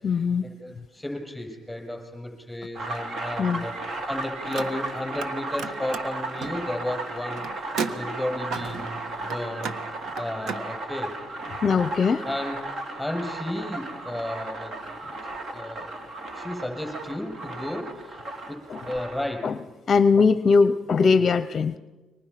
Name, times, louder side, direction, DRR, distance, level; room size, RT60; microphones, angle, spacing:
voice 1, 0.0-0.4 3.4-3.6 11.6-12.2 18.7-18.8 19.4-19.6 19.9-21.8, left 5 dB, 45° left, 14 dB, 0.7 m, -20 dB
voice 2, 0.6-3.7 4.1-7.5 7.9-9.7 10.2-11.2 12.2-14.8 15.5-16.0 16.3-19.6, left 1 dB, 5° left, 2 dB, 8.0 m, -33 dB
sound 1, 2.7-19.3, right 2 dB, 50° right, 3.0 m, -35 dB
Car, 4.4-5.3 5.6-10.7, right 5 dB, 70° right, 1.5 m, -35 dB
29.5 x 24.5 x 5.9 m, 1.2 s
cardioid pair, 85°, 0 cm